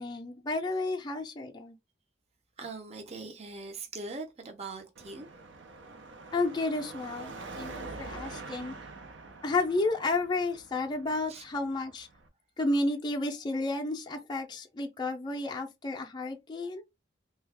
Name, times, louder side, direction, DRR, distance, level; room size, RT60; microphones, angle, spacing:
voice 1, 0.0-1.7 6.3-8.7 9.4-12.1 12.6-16.8, left 2 dB, 25° left, 0.4 m, -32 dB
voice 2, 2.6-5.3 11.3-11.4, right 3 dB, 35° right, 0.6 m, -41 dB
Car passing by / Traffic noise roadway noise / Engine, 5.0-12.3, right 3 dB, 80° right, 0.6 m, -45 dB
2.7 x 2.3 x 3.3 m
head